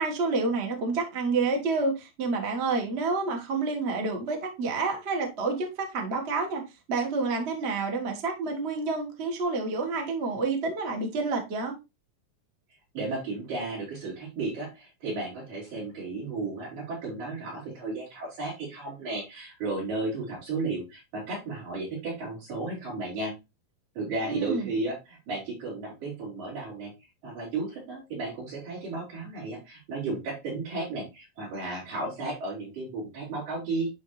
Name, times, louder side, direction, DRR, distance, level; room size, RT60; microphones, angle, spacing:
voice 1, 0.0-6.6 6.9-11.7 24.2-24.7, right 3 dB, 60° right, 0.6 m, -29 dB
voice 2, 12.9-23.3 24.0-26.9 27.2-33.9, right 3 dB, 80° right, 6.2 m, -34 dB
10.5 x 3.8 x 3.2 m
omnidirectional pair, 3.8 m